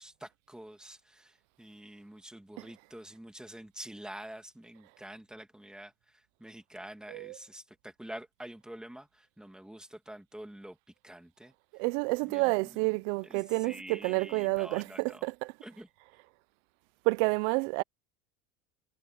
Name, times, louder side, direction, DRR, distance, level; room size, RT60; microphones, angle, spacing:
voice 1, 0.0-10.8 11.0-11.8 12.2-15.2 15.6-15.9, right 1 dB, ahead, 2.3 m, -47 dB
voice 2, 11.7-15.6 17.0-17.8, right 28 dB, 85° right, 0.5 m, -29 dB
cardioid pair, 175°, 36 cm